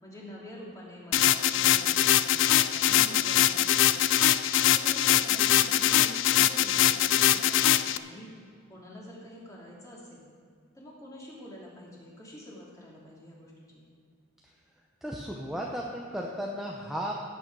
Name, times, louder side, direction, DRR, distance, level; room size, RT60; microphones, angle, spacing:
voice 1, 0.0-8.3 8.7-10.2 10.7-13.8, equal, 15° left, -4 dB, 2.6 m, -47 dB
sound 1, 1.1-8.0, left 12 dB, 60° left, 0.4 m, -23 dB
voice 2, 15.0-17.1, equal, ahead, -2 dB, 0.8 m, -34 dB
16.5 x 8.4 x 4.7 m, 2.1 s
head